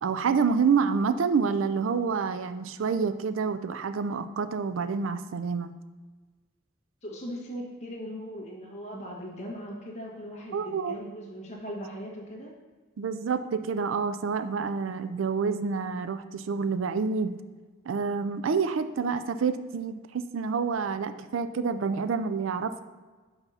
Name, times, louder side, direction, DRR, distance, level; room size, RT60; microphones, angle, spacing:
voice 1, 0.0-5.7 10.5-10.9 13.0-17.4 17.9-22.8, right 5 dB, 80° right, 11 dB, 0.4 m, -28 dB
voice 2, 7.0-12.5, equal, 35° left, -3 dB, 1.6 m, -39 dB
5.8 x 5.5 x 5.5 m, 1.4 s
head